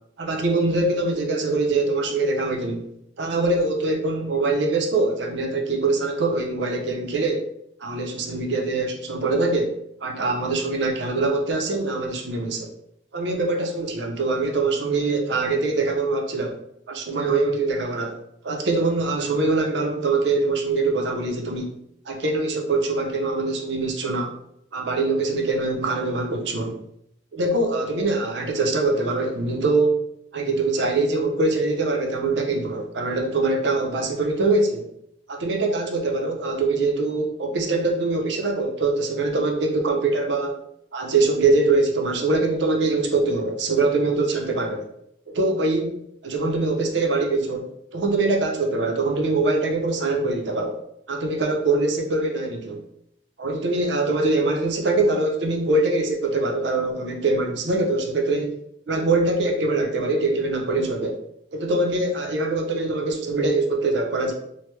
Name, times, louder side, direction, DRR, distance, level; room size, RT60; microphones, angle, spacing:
voice 1, 0.2-2.8 3.2-7.5 7.8-9.7 10.0-12.7 13.1-16.6 16.9-18.2 18.4-21.7 22.1-24.3 24.7-26.8 27.3-30.0 30.3-34.9 35.3-40.6 40.9-44.9 45.3-50.8 51.1-52.8 53.4-58.6 58.9-61.2 61.5-64.3, right 3 dB, 70° right, 2 dB, 0.6 m, -23 dB
3.0 x 2.1 x 3.2 m, 0.74 s
head